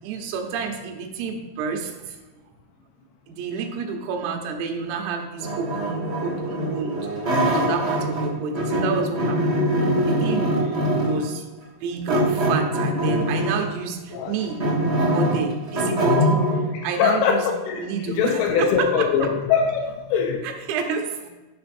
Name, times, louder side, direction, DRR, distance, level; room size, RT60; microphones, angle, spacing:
voice 1, 0.0-2.2 3.3-7.0 7.5-9.6 10.1-11.5 11.8-14.6 15.1-17.5 17.8-18.7 20.4-21.3, right 5 dB, 85° right, 3 dB, 3.9 m, -29 dB
sound 1, 5.4-8.3 8.5-11.2 12.1-13.6 14.1-16.6, equal, 35° right, 1.0 m, -23 dB
voice 2, 16.7-20.4, left 7 dB, 80° left, 3 dB, 3.0 m, -22 dB
10.5 x 6.1 x 4.3 m, 1.2 s
omnidirectional pair, 6.0 m